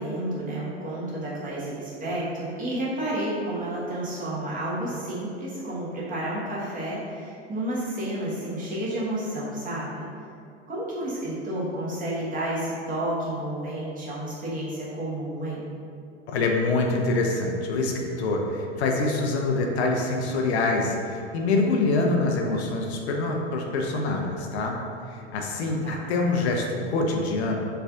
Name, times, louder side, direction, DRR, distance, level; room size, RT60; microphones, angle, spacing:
voice 1, 0.0-10.0 10.7-15.7 25.8-26.0, right 1 dB, 25° right, -7 dB, 1.1 m, -31 dB
voice 2, 16.3-24.8 25.3-27.6, left 3 dB, 70° left, 1 dB, 0.6 m, -25 dB
3.3 x 2.4 x 3.5 m, 2.4 s
hypercardioid pair, 95°, 35 cm